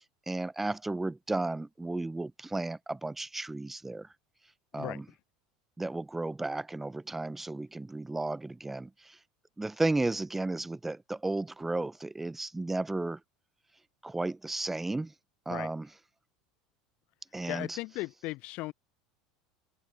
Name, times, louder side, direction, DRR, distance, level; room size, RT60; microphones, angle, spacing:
voice 1, 0.3-4.1 4.7-5.0 5.8-8.9 9.6-13.2 14.0-15.1 15.5-15.9 17.3-17.8, right 2 dB, 10° right, 0.8 m, -33 dB
voice 2, 17.5-18.7, left 21 dB, 55° left, 0.4 m, -37 dB
figure-of-eight pair, 75°, 2 cm